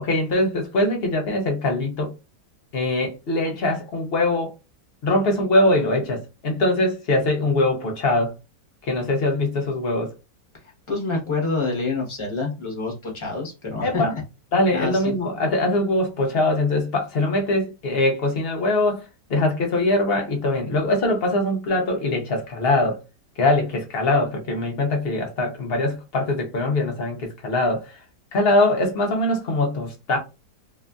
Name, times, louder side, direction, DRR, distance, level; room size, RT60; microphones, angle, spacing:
voice 1, 0.0-2.1 2.7-4.5 5.0-8.3 8.8-10.1 13.8-14.1 14.5-23.0 23.4-28.0 28.3-30.2, left 2 dB, 60° left, 0.6 m, -22 dB
voice 2, 10.6-14.2 14.7-15.1, left 3 dB, 25° left, 0.8 m, -27 dB
2.8 x 2.4 x 2.2 m
omnidirectional pair, 1.7 m